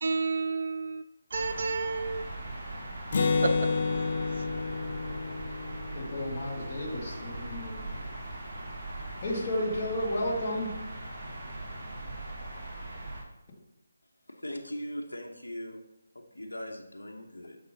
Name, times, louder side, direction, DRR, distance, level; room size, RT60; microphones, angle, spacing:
voice 1, 0.0-1.0 1.3-2.2 3.4-3.7, right 4 dB, 55° right, 0.6 m, -30 dB
sound 1, 1.3-13.2, right 2 dB, 20° right, 2.1 m, -40 dB
Acoustic guitar, 3.1-6.8, left 4 dB, 50° left, 0.7 m, -30 dB
voice 2, 5.9-8.1 9.2-10.8, left 1 dB, 30° left, 2.1 m, -33 dB
voice 3, 14.3-15.8 16.1-17.6, equal, 85° left, 1.1 m, -40 dB
7.0 x 5.4 x 4.0 m
figure-of-eight pair, 155°, 0 cm